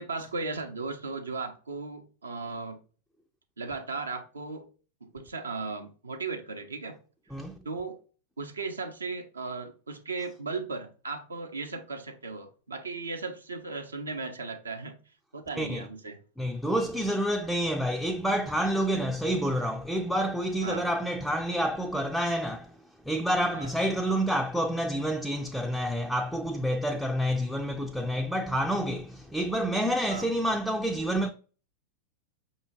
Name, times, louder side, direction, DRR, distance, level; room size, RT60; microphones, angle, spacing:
voice 1, 0.0-2.8 3.6-4.7 5.0-7.0 7.6-8.0 8.4-15.0 15.3-16.2 20.6-20.9 23.5-23.7 30.1-30.3, right 3 dB, 75° right, 0.6 m, -36 dB
voice 2, 15.6-15.9 16.4-22.7 23.1-31.3, equal, ahead, 0.3 m, -28 dB
5.4 x 2.7 x 2.9 m
figure-of-eight pair, 90°, 0 cm